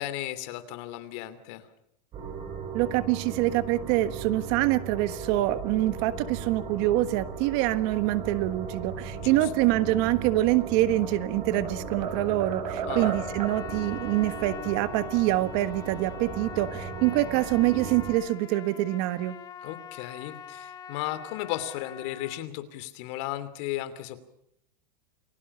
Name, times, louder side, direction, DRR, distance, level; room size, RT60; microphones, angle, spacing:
voice 1, 0.0-1.7 9.2-9.5 12.8-13.1 19.6-24.2, left 14 dB, 45° left, 12 dB, 2.9 m, -35 dB
sound 1, 2.1-18.2, right 4 dB, 25° right, 6.1 m, -37 dB
voice 2, 2.7-19.4, right 16 dB, 40° right, 12 dB, 1.4 m, -25 dB
sound 2, 10.7-11.2 11.5-13.6, right 7 dB, 75° right, 6.2 m, -34 dB
Trumpet, 13.0-22.4, left 8 dB, 20° left, 1.4 m, -44 dB
29.5 x 22.0 x 5.6 m, 0.74 s
supercardioid pair, 165°, 21 cm